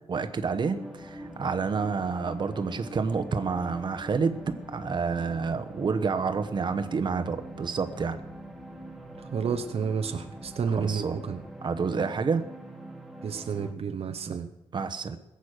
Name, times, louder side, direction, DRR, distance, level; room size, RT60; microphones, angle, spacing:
voice 1, 0.1-4.4 4.7-8.2 10.7-11.2 11.6-12.4 14.3-14.4 14.7-15.2, right 5 dB, 45° right, 9 dB, 1.0 m, -29 dB
sound 1, 0.7-13.7, right 1 dB, ahead, 1.5 m, -43 dB
sound 2, 1.0-11.5, equal, 80° left, 4.0 m, -54 dB
voice 2, 9.2-11.4 13.2-14.5, right 6 dB, 75° right, 7 dB, 0.8 m, -30 dB
20.5 x 8.2 x 6.5 m, 0.93 s
wide cardioid pair, 155°, 10 cm